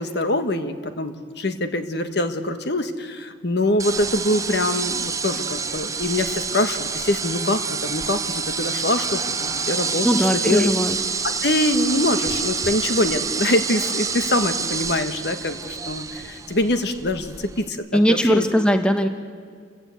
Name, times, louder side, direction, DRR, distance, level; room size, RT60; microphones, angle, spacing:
voice 1, 0.0-10.7 11.2-18.5, left 1 dB, 55° left, 8 dB, 1.3 m, -24 dB
sound 1, 3.8-17.7, right 5 dB, 15° right, 0.5 m, -27 dB
voice 2, 10.0-11.0 17.9-19.1, equal, 5° left, 6 dB, 0.9 m, -19 dB
28.5 x 15.5 x 8.3 m, 2.1 s
head